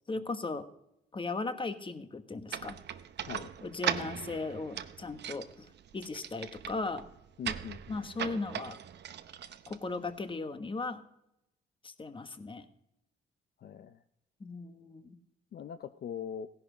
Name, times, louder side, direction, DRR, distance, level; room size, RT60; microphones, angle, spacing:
voice 1, 0.1-0.7 1.1-2.8 3.6-7.1 7.9-8.8 9.7-11.0 11.8-12.7 14.4-15.2, left 3 dB, 25° left, 10 dB, 1.2 m, -37 dB
sound 1, 2.5-10.3, right 9 dB, 60° right, 0.8 m, -39 dB
voice 2, 7.4-8.0 13.6-14.0 15.5-16.5, left 8 dB, 55° left, 10 dB, 0.6 m, -41 dB
16.5 x 10.5 x 5.1 m, 0.85 s
cardioid pair, 90°, 20 cm